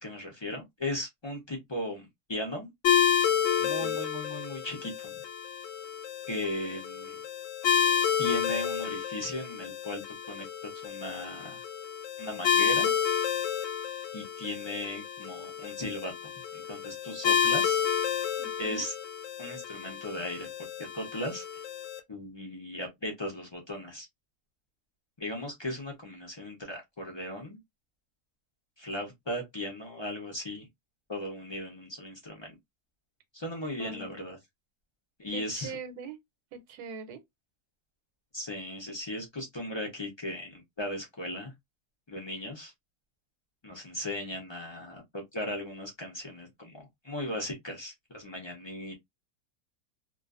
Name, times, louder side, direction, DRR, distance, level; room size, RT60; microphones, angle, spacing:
voice 1, 0.0-2.7 3.6-5.2 6.3-7.2 8.2-11.6 12.2-12.9 14.1-17.8 18.6-18.9 19.4-20.5 20.8-21.6 22.1-24.1 25.2-27.6 28.8-30.7 31.1-32.5 33.3-34.4 35.2-35.7 38.3-41.5 42.1-42.7 43.6-48.9, left 1 dB, 45° left, 0.3 m, -37 dB
sound 1, 2.8-22.0, left 8 dB, 65° left, 0.9 m, -30 dB
voice 2, 3.6-4.0 18.4-18.9 33.8-34.2 35.3-36.2 36.5-37.2, right 4 dB, 90° right, 1.1 m, -42 dB
2.4 x 2.3 x 2.4 m
omnidirectional pair, 1.6 m